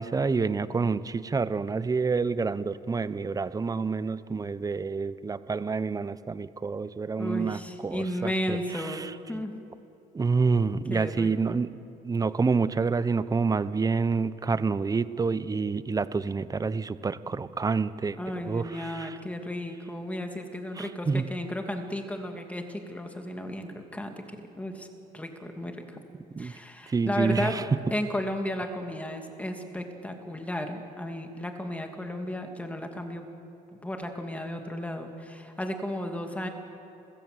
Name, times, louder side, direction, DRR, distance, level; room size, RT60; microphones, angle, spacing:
voice 1, 0.0-9.1 10.1-11.7 12.0-18.2 18.5-19.2 20.8-21.2 26.3-26.5 26.9-27.6, right 4 dB, 20° right, 15 dB, 0.8 m, -28 dB
voice 2, 7.2-9.0 9.3-9.5 10.9-11.3 18.2-24.9 25.1-26.0 26.4-27.6 27.9-33.2 33.8-36.5, left 1 dB, 10° left, 4 dB, 2.5 m, -34 dB
28.0 x 16.0 x 8.0 m, 2.9 s
cardioid pair, 110°, 17 cm